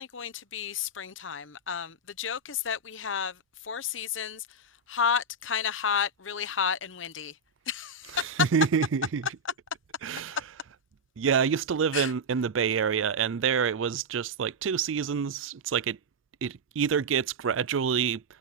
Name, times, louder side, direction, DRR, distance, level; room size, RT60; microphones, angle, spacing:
voice 1, 0.0-3.4 3.6-4.5 4.9-7.3 7.7-8.3 11.9-12.1, left 7 dB, 80° left, 1.0 m, -31 dB
voice 2, 8.0-9.4 10.0-10.7 11.2-16.0 16.4-18.2, right 7 dB, 85° right, 0.4 m, -27 dB
head